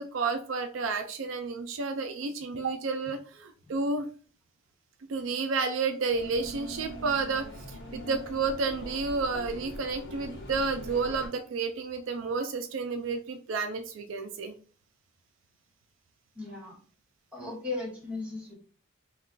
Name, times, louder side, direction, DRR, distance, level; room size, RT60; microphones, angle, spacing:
voice 1, 0.0-4.1 5.1-14.5, right 4 dB, 70° right, 7 dB, 0.4 m, -31 dB
sound 1, 6.1-11.3, equal, 60° left, 0.9 m, -42 dB
voice 2, 16.3-16.8 17.3-18.5, left 3 dB, 5° right, -5 dB, 1.0 m, -37 dB
2.3 x 2.3 x 3.7 m, 0.39 s
head